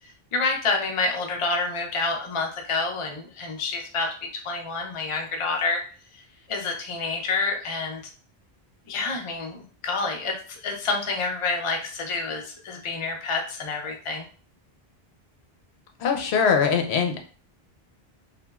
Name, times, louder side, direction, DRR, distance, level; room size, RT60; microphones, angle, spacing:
voice 1, 0.3-5.8 6.1-6.2 6.5-8.0 8.9-14.2, left 3 dB, 40° left, 2 dB, 0.5 m, -28 dB
voice 2, 16.0-17.2, left 6 dB, 90° left, 4 dB, 0.8 m, -22 dB
3.0 x 2.4 x 2.3 m, 0.41 s
omnidirectional pair, 1.1 m